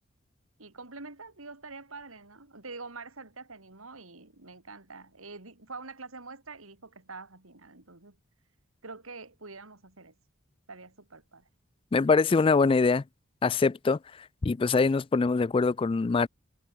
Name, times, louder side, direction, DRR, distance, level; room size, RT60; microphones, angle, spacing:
voice 1, 0.6-8.2 8.8-10.1 10.7-11.5, right 3 dB, 85° right, 3.5 m, -45 dB
voice 2, 11.9-13.0 13.4-14.0 14.4-16.3, left 4 dB, 25° left, 0.3 m, -23 dB
head